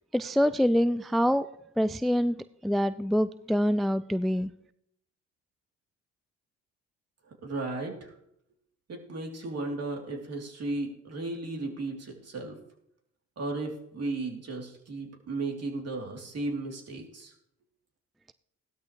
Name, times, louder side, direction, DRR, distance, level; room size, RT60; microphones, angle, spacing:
voice 1, 0.1-1.5 1.8-4.5, equal, ahead, 14 dB, 0.4 m, -25 dB
voice 2, 7.4-8.1 8.9-12.6 13.4-17.3, right 2 dB, 50° right, 0 dB, 3.4 m, -35 dB
17.0 x 12.5 x 3.3 m, 0.76 s
supercardioid pair, 60°, 31 cm